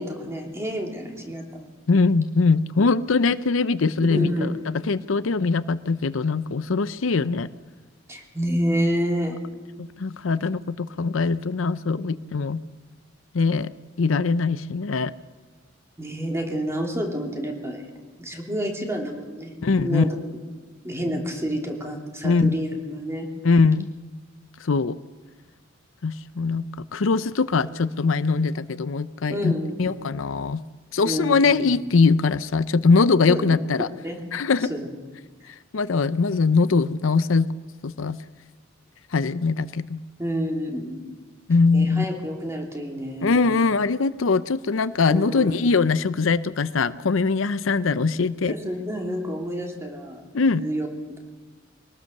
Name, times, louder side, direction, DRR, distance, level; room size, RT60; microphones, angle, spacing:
voice 1, 0.0-1.7 4.1-4.6 8.1-9.4 16.0-17.8 18.2-20.2 20.8-23.3 29.3-29.9 31.0-31.7 33.3-33.4 34.0-34.2 34.7-34.9 40.2-41.0 41.7-43.5 45.1-45.5 48.5-50.2 50.5-51.2, equal, 15° right, 1 dB, 2.9 m, -29 dB
voice 2, 1.9-7.5 9.8-12.6 13.3-13.7 14.0-15.1 19.6-20.0 22.2-22.6 23.4-23.9 24.6-25.0 26.0-30.6 30.9-33.9 34.3-34.7 35.7-37.5 37.8-38.2 39.1-40.0 41.5-42.1 43.2-48.5 50.3-50.6, left 4 dB, 80° left, 15 dB, 0.6 m, -22 dB
23.5 x 18.5 x 6.6 m, 1.3 s
head